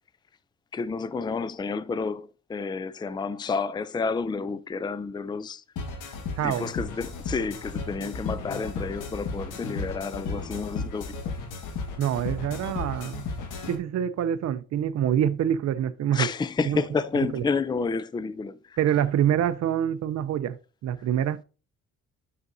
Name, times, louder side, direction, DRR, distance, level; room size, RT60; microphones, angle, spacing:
voice 1, 0.7-5.6 6.4-11.2 16.1-18.8, left 4 dB, 15° left, 0.4 m, -30 dB
sound 1, 5.8-13.8, left 4 dB, 85° left, 1.6 m, -34 dB
voice 2, 6.4-6.7 12.0-13.3 13.7-16.3 16.6-16.8 17.1-17.4 18.8-20.6 20.8-21.4, right 10 dB, 60° right, 0.6 m, -26 dB
9.6 x 6.6 x 2.7 m
cardioid pair, 90°, 30 cm